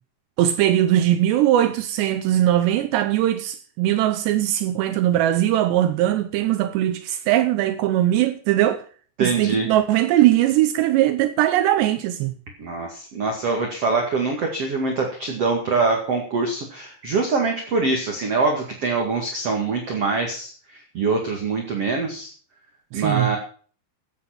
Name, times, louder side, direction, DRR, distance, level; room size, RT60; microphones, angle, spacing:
voice 1, 0.4-8.8 9.2-12.3 22.9-23.3, right 13 dB, 80° right, 2.9 m, -20 dB
voice 2, 9.2-9.7 12.6-20.5 20.9-22.3 22.9-23.4, right 4 dB, 45° right, 2.3 m, -24 dB
15.5 x 7.7 x 5.9 m
omnidirectional pair, 5.2 m